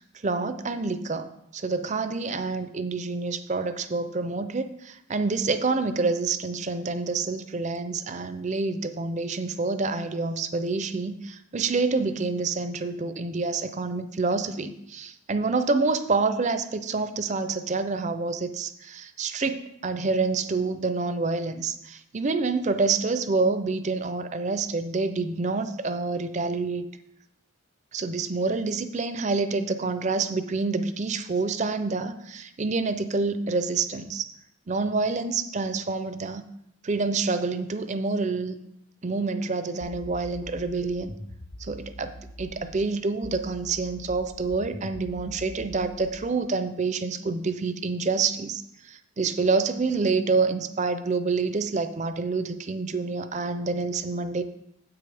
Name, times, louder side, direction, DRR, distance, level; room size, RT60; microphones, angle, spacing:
voice 1, 0.2-26.9 27.9-34.3 34.7-36.4 36.8-38.6 39.0-41.1 41.6-54.4, right 4 dB, 35° right, 11 dB, 0.5 m, -27 dB
sound 1, 39.8-42.8 43.2-46.2, left 1 dB, 45° left, 0.8 m, -43 dB
9.5 x 8.3 x 3.4 m, 0.80 s
head